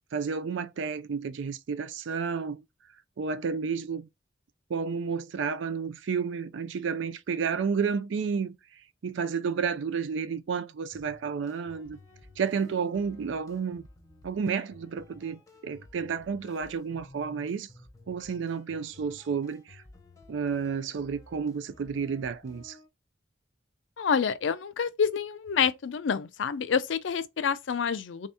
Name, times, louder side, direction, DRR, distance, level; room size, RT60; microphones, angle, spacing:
voice 1, 0.1-2.6 3.2-4.1 4.7-8.6 9.0-12.0 12.4-13.9 14.2-17.7 18.1-19.8 20.3-22.8, right 6 dB, 85° right, 0.4 m, -31 dB
sound 1, 10.9-22.9, left 2 dB, 20° left, 0.7 m, -54 dB
voice 2, 24.0-28.3, left 6 dB, 85° left, 0.4 m, -28 dB
3.5 x 2.7 x 3.4 m
head